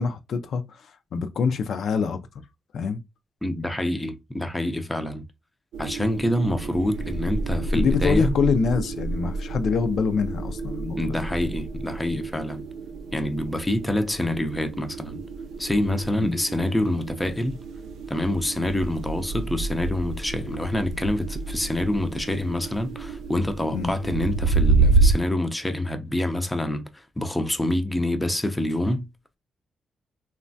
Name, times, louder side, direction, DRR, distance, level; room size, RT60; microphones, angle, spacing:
voice 1, 0.0-2.2 2.7-3.0 7.7-11.2 16.2-16.4 23.7-23.9, left 5 dB, 70° left, 0.3 m, -25 dB
voice 2, 3.4-5.3 5.8-8.3 11.0-12.6 13.1-15.2 15.6-17.6 18.1-29.1, left 1 dB, 10° left, 0.4 m, -26 dB
sound 1, 5.7-25.1, right 3 dB, 85° right, 0.4 m, -28 dB
3.1 x 2.1 x 2.5 m
cardioid pair, 100°, 0 cm